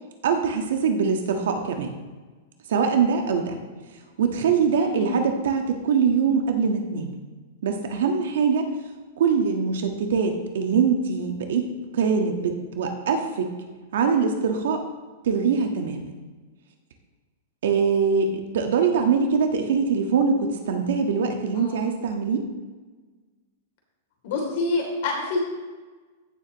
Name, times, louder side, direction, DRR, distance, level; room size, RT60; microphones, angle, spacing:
voice 1, 0.2-1.9 2.7-3.6 4.2-7.2 7.6-8.7 9.2-11.7 11.9-13.5 13.9-14.8 15.2-16.2 17.6-22.5, right 5 dB, 75° right, 4 dB, 1.5 m, -23 dB
voice 2, 21.5-21.9 24.2-25.4, left 3 dB, 55° left, 0 dB, 3.2 m, -27 dB
15.5 x 7.2 x 3.1 m, 1.3 s
supercardioid pair, 155°, 0 cm